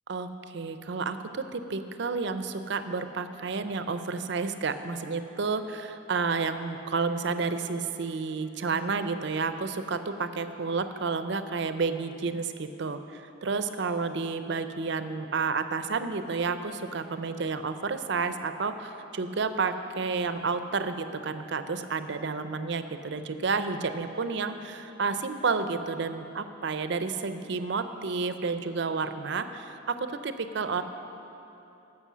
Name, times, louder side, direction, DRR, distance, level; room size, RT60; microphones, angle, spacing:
voice 1, 0.1-30.8, right 4 dB, 55° right, 10 dB, 0.5 m, -31 dB
11.0 x 7.7 x 6.2 m, 2.9 s
head